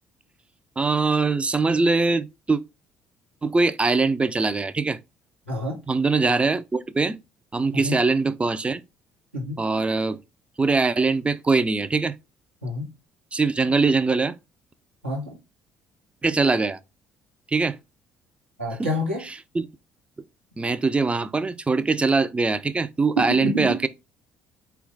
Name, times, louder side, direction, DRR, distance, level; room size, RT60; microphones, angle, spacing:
voice 1, 0.8-2.6 3.4-5.0 5.9-7.2 7.5-8.8 9.6-10.2 10.6-12.2 13.3-14.4 16.2-16.8 17.5-17.8 18.8-18.9 19.2-19.7 20.6-23.9, right 3 dB, 20° right, 0.4 m, -22 dB
voice 2, 5.5-5.8 7.8-8.0 9.3-9.6 12.6-12.9 15.0-15.4 18.6-19.2 23.2-23.7, equal, 90° right, 1.0 m, -27 dB
4.3 x 2.3 x 3.7 m
figure-of-eight pair, 50°, 6 cm